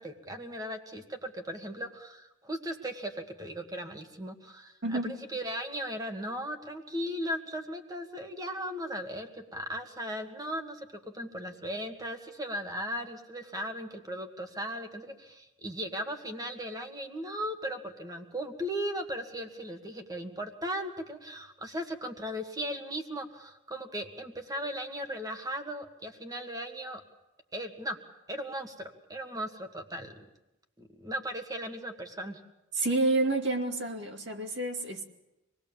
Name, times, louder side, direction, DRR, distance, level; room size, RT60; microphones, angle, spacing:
voice 1, 0.0-27.0 27.5-28.0 28.3-30.2 30.8-32.4, equal, 15° right, 5 dB, 1.8 m, -37 dB
voice 2, 32.7-35.1, right 2 dB, 55° right, 3 dB, 2.4 m, -29 dB
26.0 x 20.0 x 7.2 m, 0.96 s
head